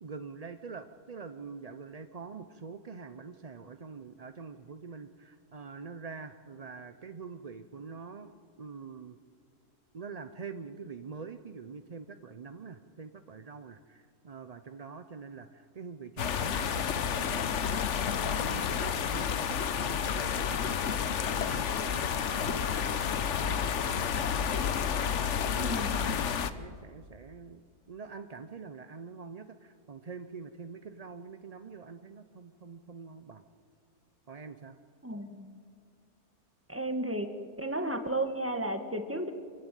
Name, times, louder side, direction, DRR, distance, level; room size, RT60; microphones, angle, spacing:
voice 1, 0.0-8.3 8.6-9.2 9.9-25.0 25.5-27.6 27.9-33.5 34.3-34.8, right 5 dB, 55° right, 9 dB, 0.4 m, -45 dB
sound 1, 16.2-26.5, left 7 dB, 55° left, 1.1 m, -30 dB
voice 2, 25.6-26.1 35.0-35.6 36.7-37.3 37.6-39.3, right 1 dB, 10° right, 7 dB, 1.4 m, -33 dB
26.0 x 15.0 x 9.0 m, 2.1 s
omnidirectional pair, 1.6 m